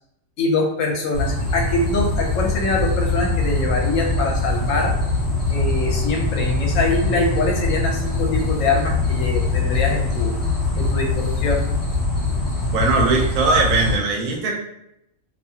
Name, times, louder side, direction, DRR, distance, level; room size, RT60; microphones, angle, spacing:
voice 1, 0.4-4.9 5.5-10.4 10.7-11.6, left 3 dB, 75° left, 0 dB, 1.0 m, -23 dB
sound 1, 1.1-14.0, left 3 dB, 50° left, 1.1 m, -22 dB
voice 2, 12.7-14.5, right 3 dB, 90° right, -1 dB, 1.0 m, -19 dB
2.6 x 2.3 x 2.8 m, 0.80 s
omnidirectional pair, 1.4 m